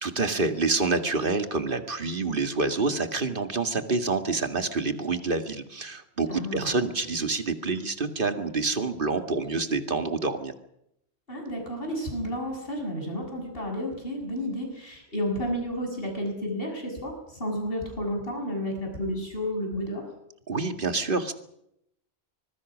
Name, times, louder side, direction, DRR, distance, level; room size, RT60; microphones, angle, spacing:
voice 1, 0.0-10.5 20.5-21.3, right 3 dB, 55° right, 8 dB, 2.2 m, -27 dB
voice 2, 6.3-6.8 11.3-20.0, equal, 60° left, 2 dB, 7.1 m, -31 dB
25.0 x 21.5 x 6.3 m, 0.77 s
omnidirectional pair, 1.1 m